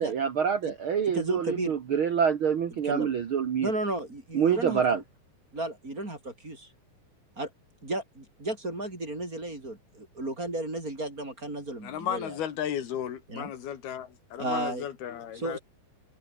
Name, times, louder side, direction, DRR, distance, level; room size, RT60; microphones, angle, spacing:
voice 1, 0.0-3.7 4.3-5.0, right 7 dB, 90° right, 1.1 m, -26 dB
voice 2, 1.1-1.7 2.8-3.1 3.6-5.0 5.5-6.7 7.4-7.5 7.8-12.4 13.3-13.5 14.4-14.9 15.3-15.6, right 1 dB, 20° right, 5.9 m, -33 dB
voice 3, 11.8-15.6, left 9 dB, 70° left, 4.4 m, -34 dB
omnidirectional pair, 4.6 m